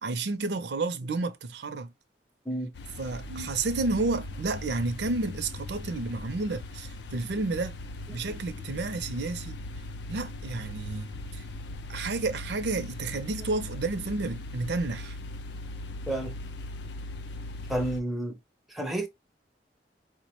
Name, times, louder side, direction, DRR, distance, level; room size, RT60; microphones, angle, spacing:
voice 1, 0.0-1.9 3.0-7.8 8.1-9.6 10.1-11.4 11.9-15.2, right 3 dB, 70° right, 0.5 m, -31 dB
sound 1, 2.7-18.0, left 2 dB, 70° left, 0.4 m, -39 dB
voice 2, 8.1-8.4 16.1-16.4 17.7-18.4 18.7-19.1, right 1 dB, ahead, 0.5 m, -31 dB
4.5 x 2.1 x 2.9 m
head